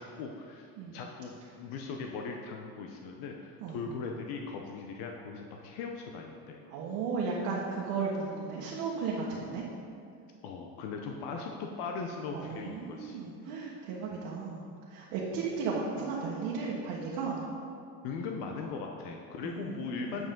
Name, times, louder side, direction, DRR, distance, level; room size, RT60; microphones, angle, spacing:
voice 1, 0.0-6.6 10.4-13.2 13.5-13.6 18.0-20.3, left 5 dB, 75° left, 2 dB, 0.8 m, -39 dB
voice 2, 6.7-9.6 12.3-14.6 14.9-17.4 19.4-20.3, right 4 dB, 75° right, -5 dB, 1.4 m, -35 dB
7.8 x 7.7 x 3.8 m, 2.4 s
cardioid pair, 140°, 36 cm